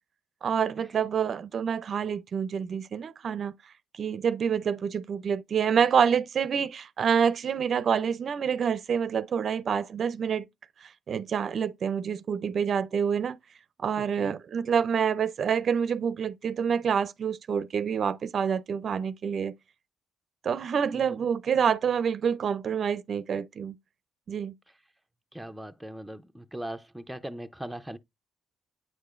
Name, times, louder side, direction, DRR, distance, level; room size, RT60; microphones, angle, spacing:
voice 1, 0.4-3.5 4.0-10.4 11.1-13.4 13.8-19.5 20.4-23.7 24.3-24.5, right 7 dB, 55° right, 0.5 m, -27 dB
voice 2, 14.0-14.3 20.9-21.2 25.3-28.0, right 1 dB, 5° right, 0.5 m, -40 dB
8.6 x 4.8 x 2.4 m
cardioid pair, 90°, 0 cm